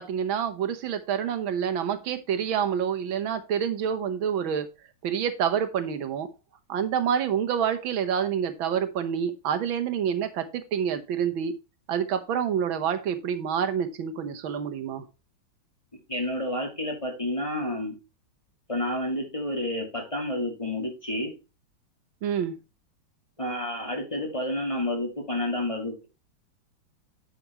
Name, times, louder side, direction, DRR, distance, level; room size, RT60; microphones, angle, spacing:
voice 1, 0.0-4.7 5.0-6.3 6.7-11.5 11.9-15.0 22.2-22.6, right 8 dB, 80° right, 8 dB, 1.8 m, -27 dB
voice 2, 16.1-17.9 18.7-21.3 23.4-26.1, left 1 dB, 15° left, 1 dB, 2.3 m, -30 dB
10.5 x 5.9 x 3.0 m, 0.28 s
omnidirectional pair, 2.2 m